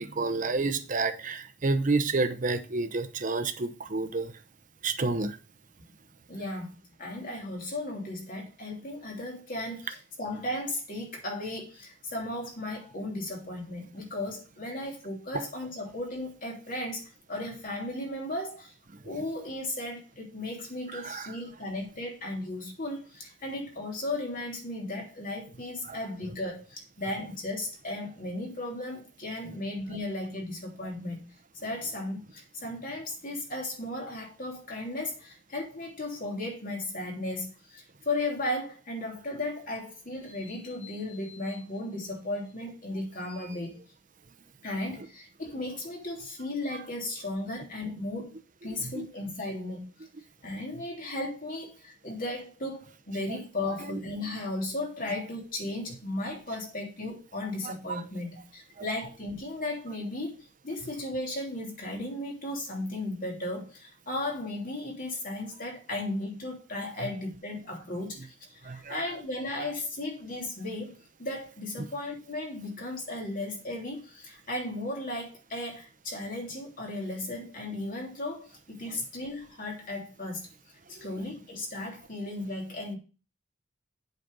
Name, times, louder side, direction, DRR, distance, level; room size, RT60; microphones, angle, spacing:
voice 1, 0.0-4.3 4.8-5.4 20.9-21.3 25.8-26.0 48.9-49.1 57.6-58.0 68.6-69.0, right 3 dB, 45° right, 0.8 m, -29 dB
voice 2, 6.3-6.7 7.0-17.0 17.3-18.7 19.0-31.3 31.6-43.8 44.6-48.4 48.6-49.9 50.4-70.9 71.2-80.5 80.9-83.0, left 2 dB, 50° left, 3.0 m, -35 dB
7.9 x 5.2 x 5.4 m
head